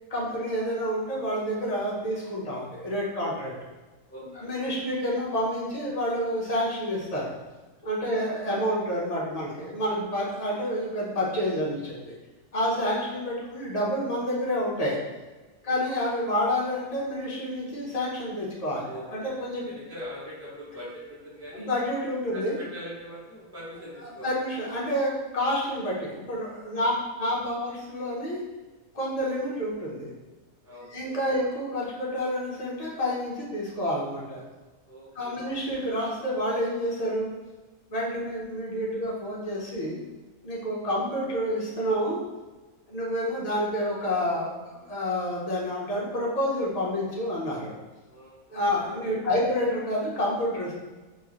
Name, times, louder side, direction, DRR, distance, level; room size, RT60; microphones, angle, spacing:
voice 1, 0.1-3.5 4.4-7.3 7.8-12.1 12.5-15.0 15.6-19.7 21.5-22.5 24.0-26.9 27.2-28.4 28.9-30.1 30.9-34.4 35.1-37.3 37.9-40.0 40.4-42.2 42.9-47.7 48.5-50.7, equal, 30° left, -5 dB, 1.0 m, -29 dB
voice 2, 4.1-4.9 8.1-8.4 12.6-12.8 15.6-15.9 18.8-21.7 22.3-24.3 26.7-26.9 29.4-29.6 30.6-31.1 34.9-35.5 38.2-38.3 48.0-49.2, equal, 15° left, -7 dB, 0.7 m, -43 dB
4.5 x 3.1 x 3.1 m, 1.2 s
omnidirectional pair, 1.6 m